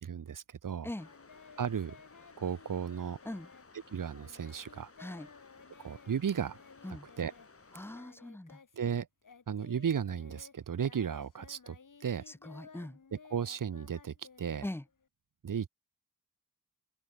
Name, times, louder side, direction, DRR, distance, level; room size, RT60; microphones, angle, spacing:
voice 1, 0.0-0.9 1.6-2.0 2.4-3.2 3.9-4.9 5.8-6.6 7.2-7.3 8.8-9.1 9.5-12.2 13.1-14.7 15.4-15.7, right 7 dB, 70° right, 1.2 m, -35 dB
Singing, 1.0-9.0 9.2-15.1, left 5 dB, 70° left, 7.6 m, -57 dB
sound 1, 1.0-8.0, left 4 dB, 45° left, 7.2 m, -58 dB
voice 2, 5.0-5.3 6.8-7.1 7.7-8.6 12.3-13.0 14.6-14.8, left 1 dB, 5° left, 1.2 m, -41 dB
open air
wide cardioid pair, 110°, 33 cm